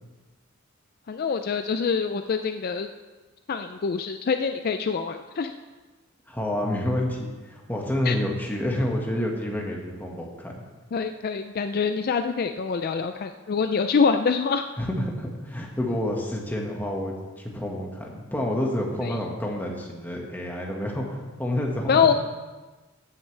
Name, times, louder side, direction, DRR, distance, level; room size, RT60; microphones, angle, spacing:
voice 1, 1.1-2.9 3.5-5.5 8.0-8.2 10.9-14.6 19.0-19.2 21.9-22.1, left 5 dB, 50° left, 8 dB, 0.4 m, -25 dB
voice 2, 6.3-10.5 14.8-22.0, left 1 dB, 10° left, -1 dB, 1.6 m, -29 dB
15.0 x 9.6 x 3.3 m, 1.3 s
head